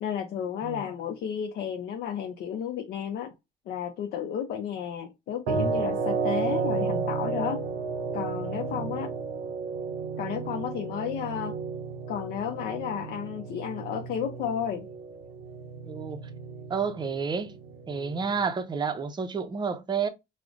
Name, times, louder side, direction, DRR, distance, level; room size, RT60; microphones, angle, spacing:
voice 1, 0.0-3.3 3.7-7.6 8.1-9.1 10.2-11.6 12.1-14.9, left 8 dB, 65° left, 0.5 m, -32 dB
sound 1, 5.5-18.5, right 5 dB, 85° right, 0.5 m, -33 dB
voice 2, 15.8-16.2 16.7-17.5 17.9-20.1, right 5 dB, 25° right, 0.5 m, -30 dB
4.9 x 2.0 x 2.4 m
cardioid pair, 110°, 17 cm